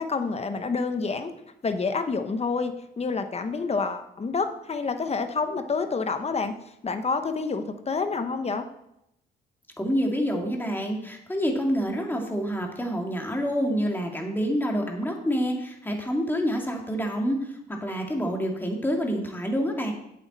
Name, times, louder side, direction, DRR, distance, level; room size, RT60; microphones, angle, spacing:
voice 1, 0.0-1.3 1.6-6.5 6.8-8.7, left 4 dB, 30° left, 8 dB, 1.0 m, -28 dB
voice 2, 9.8-17.5 17.8-19.9, equal, 10° left, 1 dB, 2.0 m, -27 dB
8.1 x 8.0 x 4.3 m, 0.81 s
cardioid pair, 90°, 20 cm